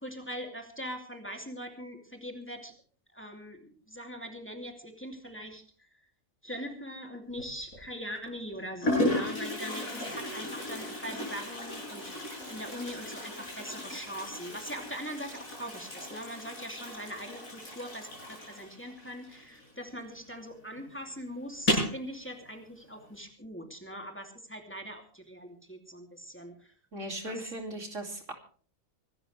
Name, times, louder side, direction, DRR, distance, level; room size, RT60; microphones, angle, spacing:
voice 1, 0.0-2.7 3.1-5.6 6.4-26.7 27.2-27.5, equal, 10° left, 3 dB, 2.7 m, -41 dB
Toilet flush, 7.3-7.8 8.5-8.6 8.8-20.1 20.4-20.5 20.8-20.9 21.5-22.0, left 1 dB, 85° left, 7.7 m, -35 dB
voice 2, 26.9-28.3, right 1 dB, 65° right, 3 dB, 3.1 m, -38 dB
25.5 x 12.5 x 3.3 m, 0.44 s
omnidirectional pair, 1.4 m